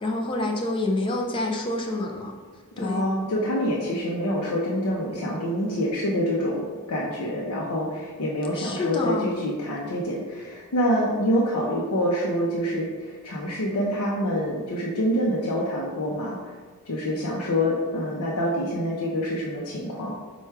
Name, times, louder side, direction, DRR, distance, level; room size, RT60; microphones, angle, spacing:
voice 1, 0.0-2.3 2.8-3.0 8.5-9.3, left 2 dB, 25° left, 1 dB, 0.5 m, -27 dB
voice 2, 2.8-16.4 16.9-20.1, equal, 85° left, -4 dB, 0.6 m, -26 dB
4.4 x 2.3 x 4.6 m, 1.5 s
head